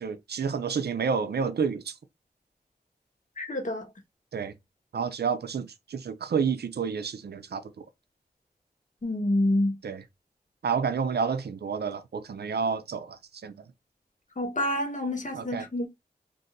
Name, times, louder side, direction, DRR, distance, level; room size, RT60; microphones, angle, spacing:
voice 1, 0.0-1.9 4.3-4.5 4.9-7.8 9.8-10.0 10.6-13.5 15.3-15.6, right 6 dB, 80° right, 0.4 m, -30 dB
voice 2, 3.4-3.9 9.0-9.8 14.4-15.9, left 1 dB, 50° left, 1.1 m, -27 dB
2.6 x 2.5 x 4.0 m
wide cardioid pair, 60°, 17 cm